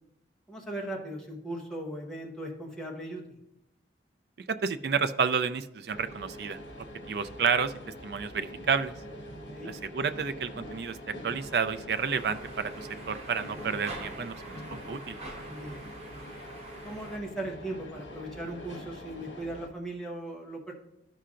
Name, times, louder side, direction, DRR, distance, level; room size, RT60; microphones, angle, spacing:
voice 1, 0.5-3.4 9.5-9.7 15.5-15.9 16.8-20.7, right 1 dB, 5° left, -2 dB, 1.0 m, -38 dB
voice 2, 4.5-6.6 7.1-7.7 8.0-8.9 9.7-14.6 14.9-15.2, right 6 dB, 60° right, 11 dB, 0.4 m, -30 dB
sound 1, 5.9-19.7, equal, 80° left, 1.3 m, -44 dB
sound 2, 11.9-17.2, right 2 dB, 35° right, 1.1 m, -46 dB
12.5 x 5.6 x 2.5 m, 0.86 s
head